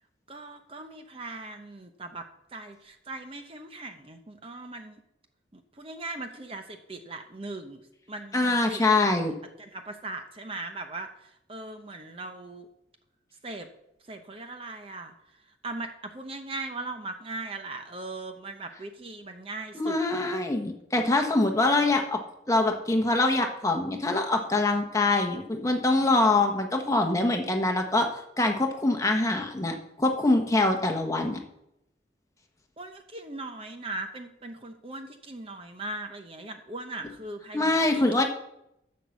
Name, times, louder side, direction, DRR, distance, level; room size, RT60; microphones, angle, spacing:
voice 1, 0.3-5.0 5.5-7.8 8.1-9.2 9.6-12.7 13.4-13.7 14.0-15.1 15.6-20.3 32.8-38.2, right 2 dB, 30° right, 6 dB, 0.8 m, -39 dB
voice 2, 8.3-9.3 19.7-22.2 22.5-31.4 37.5-38.2, left 2 dB, 15° left, 3 dB, 1.2 m, -24 dB
10.5 x 6.5 x 7.1 m, 0.82 s
head